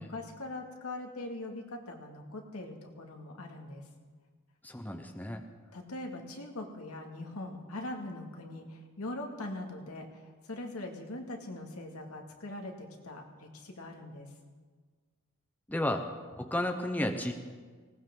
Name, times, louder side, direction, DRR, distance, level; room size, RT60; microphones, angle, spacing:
voice 1, 0.0-3.8 5.7-14.3, left 2 dB, 75° left, 1 dB, 2.1 m, -42 dB
voice 2, 4.6-5.4 15.7-16.1 16.4-17.3, left 1 dB, 10° left, 5 dB, 0.7 m, -32 dB
19.5 x 18.5 x 3.8 m, 1.5 s
head